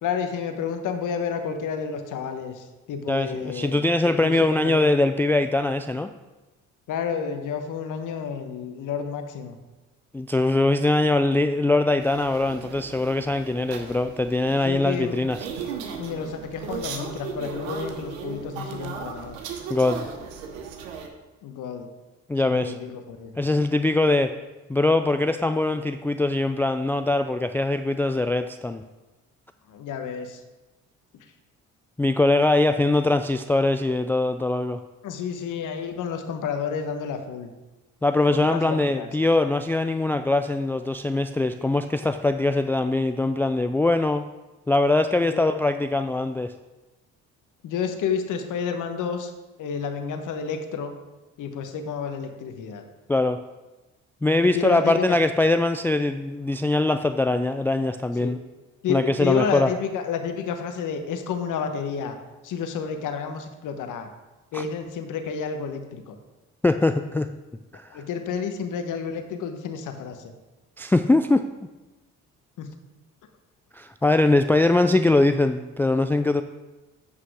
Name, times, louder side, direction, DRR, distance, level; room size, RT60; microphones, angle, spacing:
voice 1, 0.0-4.9 6.9-9.6 14.6-15.2 16.0-19.4 21.4-21.9 22.4-23.4 29.7-30.4 35.0-37.5 38.3-39.1 45.2-45.5 47.6-49.3 49.6-50.9 51.4-52.8 54.4-55.2 58.2-58.4 58.8-62.2 62.4-64.1 64.5-66.2 67.9-70.3 72.6-72.7, left 6 dB, 65° left, 6 dB, 1.1 m, -30 dB
voice 2, 3.1-6.1 10.1-15.4 19.7-20.1 22.3-22.7 23.4-24.3 24.7-28.8 32.0-34.8 38.0-44.2 44.7-46.5 53.1-53.4 54.2-58.4 58.9-59.7 64.5-64.6 66.6-67.3 67.7-67.9 70.8-71.5 73.7-76.4, left 2 dB, 5° left, 9 dB, 0.3 m, -22 dB
sound 1, 12.0-21.1, right 6 dB, 90° right, 0.9 m, -36 dB
8.2 x 5.8 x 4.8 m, 1.1 s
supercardioid pair, 60°, 33 cm